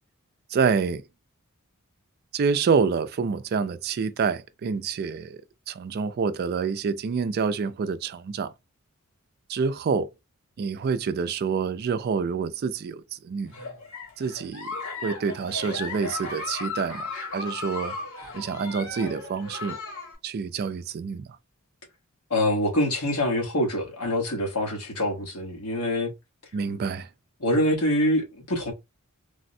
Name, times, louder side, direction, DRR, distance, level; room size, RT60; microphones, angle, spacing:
voice 1, 0.5-1.0 2.3-8.5 9.5-10.1 10.6-13.5 14.2-14.7 15.0-18.0 18.3-19.8 20.2-21.4 26.5-27.1, right 5 dB, 45° right, 0.3 m, -27 dB
Giggle, 13.4-20.1, left 3 dB, 65° left, 1.4 m, -36 dB
voice 2, 22.3-26.1 27.4-28.7, left 1 dB, 90° left, 1.1 m, -25 dB
3.4 x 2.1 x 2.5 m
head